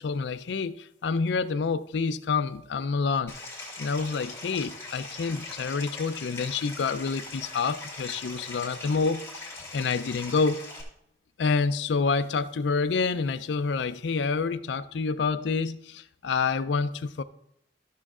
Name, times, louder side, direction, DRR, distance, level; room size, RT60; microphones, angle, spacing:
voice 1, 0.0-3.3 3.8-9.5 9.7-10.6 11.4-17.2, left 4 dB, 80° left, 0.4 m, -28 dB
Stream, 3.3-10.8, left 2 dB, 15° left, 2.3 m, -41 dB
13.0 x 6.3 x 3.7 m
head